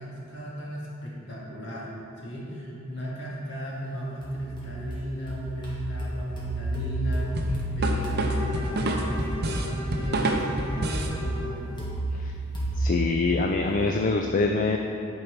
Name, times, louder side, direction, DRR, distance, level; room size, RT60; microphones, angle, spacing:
voice 1, 0.0-1.9 2.2-11.8, equal, 55° left, -6 dB, 2.1 m, -35 dB
sound 1, 4.2-9.2 11.0-14.0, right 1 dB, 20° left, 1.5 m, -32 dB
sound 2, 7.4-11.2, right 2 dB, 45° right, 0.7 m, -28 dB
Bowed string instrument, 8.2-11.6, left 3 dB, 70° left, 2.1 m, -38 dB
voice 2, 12.8-14.8, left 3 dB, 35° left, 3 dB, 0.4 m, -25 dB
11.0 x 4.6 x 5.2 m, 2.6 s
head